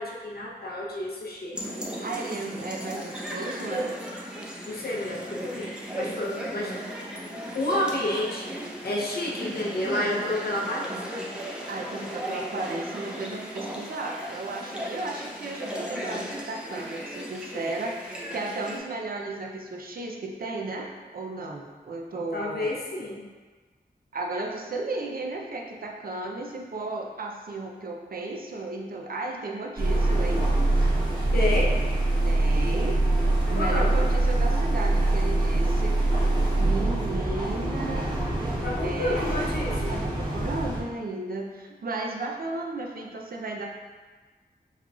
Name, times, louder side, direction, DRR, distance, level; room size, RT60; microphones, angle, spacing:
voice 1, 0.0-1.6 4.7-6.7 7.5-8.6 8.8-11.0 22.3-23.2 31.3-31.7 33.6-34.1 38.6-40.0, left 1 dB, 65° left, -3 dB, 0.7 m, -30 dB
sound 1, 1.5-18.8, equal, 5° right, 0.7 m, -36 dB
voice 2, 2.0-4.0 11.7-22.7 24.1-30.5 32.2-33.0 33.5-36.0 36.6-38.1 38.8-39.5 39.9-43.7, right 2 dB, 60° right, 0 dB, 0.6 m, -34 dB
sound 2, 29.8-40.8, right 2 dB, 25° right, 1.2 m, -24 dB
5.6 x 3.0 x 2.4 m, 1.4 s
wide cardioid pair, 80°, 17 cm